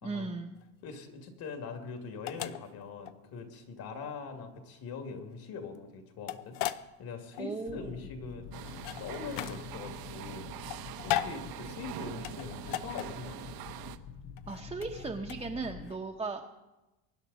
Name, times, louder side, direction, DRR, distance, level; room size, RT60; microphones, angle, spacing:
voice 1, 0.0-0.6 7.4-8.0 14.5-16.5, right 3 dB, 10° right, 1 dB, 0.9 m, -37 dB
sound 1, 0.6-16.0, left 13 dB, 70° left, 0.8 m, -39 dB
voice 2, 0.8-6.6 7.0-10.5 11.0-13.5, left 5 dB, 55° left, 4 dB, 2.5 m, -42 dB
sound 2, 7.7-15.9, left 7 dB, 35° left, 1.0 m, -47 dB
sound 3, 8.5-14.0, right 12 dB, 55° right, 0.9 m, -44 dB
23.5 x 10.5 x 4.1 m, 1.0 s
cardioid pair, 140°, 44 cm